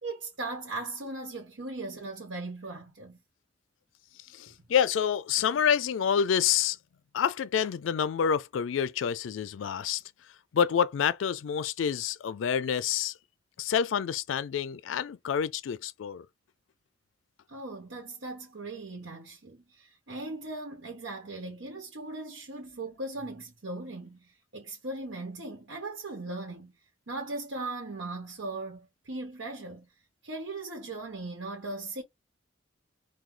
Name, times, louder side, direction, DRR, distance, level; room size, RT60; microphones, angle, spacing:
voice 1, 0.0-3.2 17.5-26.7 27.1-29.9 30.2-32.0, right 2 dB, 85° right, 1.1 m, -38 dB
voice 2, 4.3-6.8 7.1-10.0 10.5-13.1 13.6-16.3, left 8 dB, 90° left, 0.4 m, -28 dB
4.6 x 2.2 x 3.7 m
head